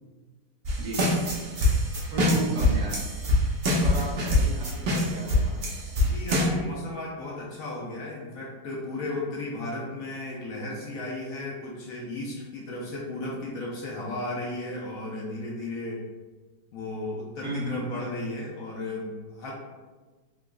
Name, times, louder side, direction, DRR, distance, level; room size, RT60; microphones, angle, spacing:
sound 1, 0.7-6.5, left 1 dB, 70° right, 0.5 m, -24 dB
voice 1, 0.8-1.2 1.8-3.0 3.8-5.7 17.4-17.8, right 1 dB, 50° right, -4 dB, 1.1 m, -34 dB
voice 2, 6.0-16.0 16.7-19.5, left 2 dB, 70° left, -3 dB, 0.8 m, -35 dB
3.7 x 2.9 x 2.3 m, 1.3 s
omnidirectional pair, 1.9 m